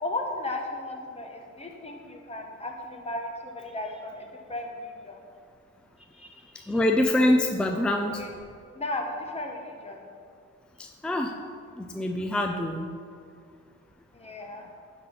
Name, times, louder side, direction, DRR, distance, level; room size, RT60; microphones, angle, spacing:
voice 1, 0.0-5.2 6.0-6.8 8.1-8.3 8.7-10.0 14.1-14.7, left 2 dB, 20° left, 1 dB, 1.4 m, -36 dB
voice 2, 6.7-8.2 10.8-11.3 11.8-12.9, left 1 dB, 5° left, 3 dB, 0.5 m, -25 dB
10.5 x 3.9 x 5.8 m, 2.3 s
cardioid pair, 90°, 30 cm